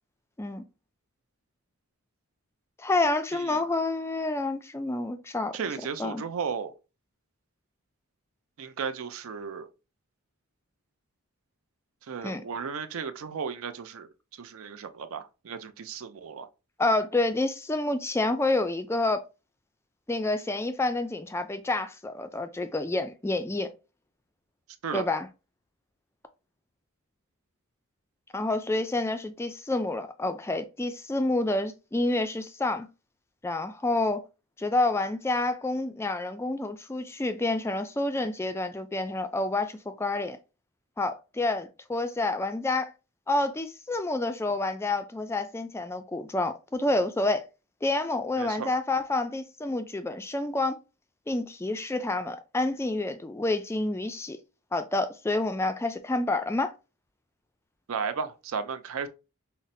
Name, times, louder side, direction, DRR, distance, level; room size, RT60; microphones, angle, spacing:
voice 1, 2.8-5.6 6.0-6.2 12.2-12.4 16.8-19.2 20.1-23.7 24.9-25.3 28.3-32.9 33.4-34.2 34.6-40.4 41.0-42.9 43.3-47.4 47.8-50.8 51.3-54.4 54.7-56.7, left 2 dB, 10° left, 0.3 m, -28 dB
voice 2, 3.3-3.6 5.5-6.7 8.6-9.7 12.0-16.5 24.8-25.1 48.4-48.7 57.9-59.1, right 6 dB, 70° right, 0.4 m, -35 dB
5.6 x 2.1 x 2.6 m
head